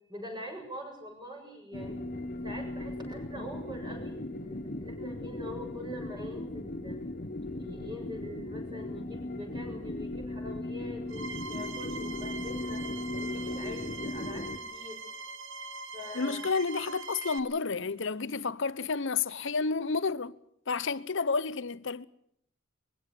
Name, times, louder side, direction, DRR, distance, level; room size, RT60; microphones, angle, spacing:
voice 1, 0.1-2.0 2.4-7.0 7.6-12.8 13.2-16.4, left 1 dB, 20° right, 7.2 m, -44 dB
sound 1, 1.7-14.6, left 1 dB, 40° left, 1.3 m, -37 dB
sound 2, 11.1-17.4, right 3 dB, 75° right, 1.7 m, -42 dB
voice 2, 16.1-20.3 20.7-22.0, left 4 dB, 65° left, 0.9 m, -30 dB
22.5 x 16.0 x 9.9 m
head